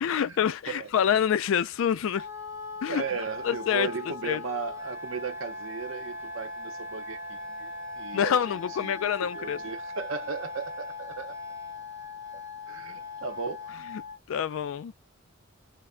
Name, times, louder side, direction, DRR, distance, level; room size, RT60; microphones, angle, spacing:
voice 1, 0.0-2.3 2.8-3.0 3.4-3.9 4.3-4.4 8.1-9.6 13.9-14.0 14.3-14.9, left 8 dB, 75° left, 0.3 m, -26 dB
Wind instrument woodwind instrument, 2.1-14.2, left 3 dB, 15° right, 0.5 m, -39 dB
voice 2, 2.9-7.7 7.9-8.9 9.2-11.4 12.7-13.8, right 5 dB, 75° right, 0.6 m, -36 dB
3.2 x 2.0 x 3.6 m
head